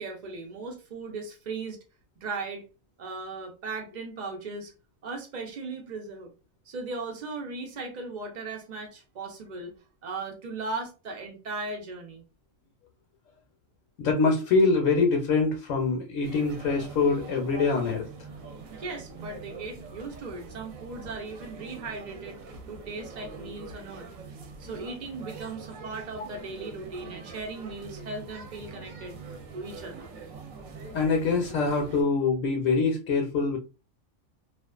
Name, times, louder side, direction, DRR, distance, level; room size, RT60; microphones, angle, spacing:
voice 1, 0.0-1.8 2.2-2.6 3.0-4.7 5.0-6.3 6.7-9.7 10.0-12.2 18.7-24.1 24.6-30.1, right 3 dB, 50° right, 2 dB, 0.5 m, -37 dB
voice 2, 14.0-18.1 30.9-33.6, left 4 dB, 70° left, 2 dB, 0.9 m, -24 dB
sound 1, 16.2-32.0, right 4 dB, 75° right, 0.9 m, -44 dB
2.4 x 2.3 x 2.2 m, 0.31 s
omnidirectional pair, 1.5 m